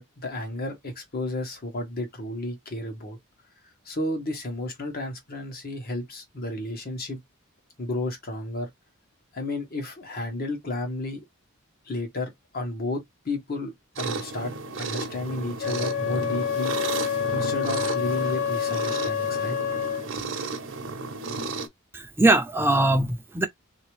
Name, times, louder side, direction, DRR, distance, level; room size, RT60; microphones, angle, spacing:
voice 1, 0.0-3.2 3.8-7.2 7.8-8.7 9.3-11.2 11.8-16.8 17.3-19.6, left 2 dB, 45° left, 1.2 m, -32 dB
sound 1, 14.0-21.7, right 4 dB, 60° right, 0.8 m, -33 dB
Wind instrument woodwind instrument, 15.6-20.1, left 8 dB, 60° left, 0.5 m, -28 dB
voice 2, 21.9-23.5, right 2 dB, 10° right, 0.5 m, -21 dB
3.4 x 2.8 x 3.1 m
head